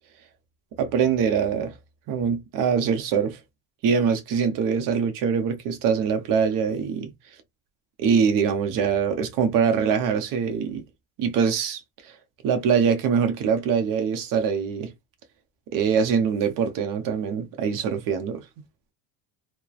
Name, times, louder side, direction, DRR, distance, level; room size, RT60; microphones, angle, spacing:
voice 1, 0.8-1.7 2.1-3.4 3.8-7.1 8.0-10.8 11.2-11.8 12.4-14.9 15.7-18.4, right 6 dB, 45° right, 0.7 m, -23 dB
3.1 x 2.0 x 2.3 m
cardioid pair, 155°, 45 cm